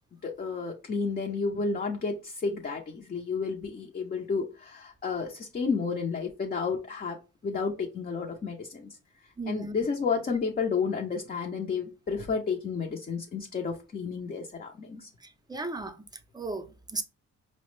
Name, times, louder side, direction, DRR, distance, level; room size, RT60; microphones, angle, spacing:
voice 1, 0.2-7.2 7.4-9.0 9.5-15.1, left 5 dB, 30° left, 0.6 m, -31 dB
voice 2, 9.4-9.8 15.2-16.0 16.3-17.0, right 2 dB, 15° right, 0.5 m, -35 dB
4.7 x 2.1 x 3.1 m
cardioid pair, 90°, 30 cm